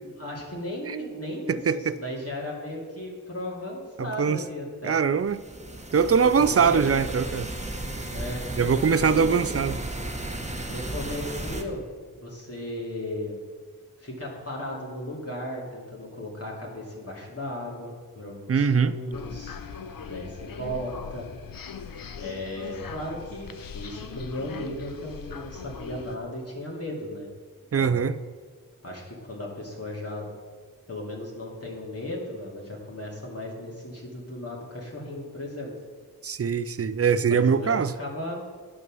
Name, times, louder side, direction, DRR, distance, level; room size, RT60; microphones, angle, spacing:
voice 1, 0.0-5.0 6.1-7.1 8.1-8.4 9.0-9.4 10.7-11.8 12.1-13.4 14.0-19.6 20.0-21.3 22.2-27.3 27.7-28.0 28.8-30.3 30.9-35.7 37.3-38.4, left 1 dB, 45° left, 2.4 m, -36 dB
voice 2, 1.5-1.9 4.0-4.4 4.8-5.4 5.9-7.5 8.6-9.8 18.5-18.9 27.7-28.1 36.2-37.9, right 6 dB, 45° right, 0.5 m, -22 dB
sound 1, 5.2-11.6, right 1 dB, 20° right, 1.1 m, -34 dB
sound 2, 19.1-26.2, left 6 dB, 90° left, 0.6 m, -40 dB
9.5 x 6.1 x 6.1 m
wide cardioid pair, 50°, 33 cm